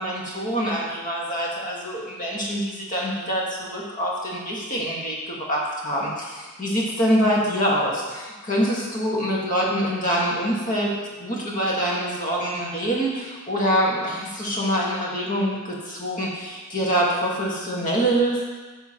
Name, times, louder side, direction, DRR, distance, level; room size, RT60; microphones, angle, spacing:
voice 1, 0.0-18.4, equal, 35° left, -4 dB, 1.4 m, -25 dB
9.4 x 5.7 x 2.9 m, 1.3 s
head